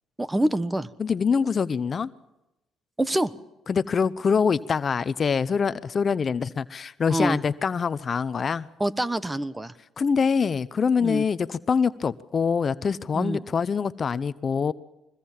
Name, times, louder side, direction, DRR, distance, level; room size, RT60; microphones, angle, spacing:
voice 1, 0.2-0.9 3.0-3.3 7.1-7.4 8.8-9.7 11.0-11.2 13.1-13.4, right 1 dB, 15° right, 1.2 m, -25 dB
voice 2, 1.0-2.1 3.7-8.7 10.0-14.7, left 6 dB, 45° left, 0.7 m, -24 dB
23.5 x 21.0 x 7.4 m
supercardioid pair, 70°, 0 cm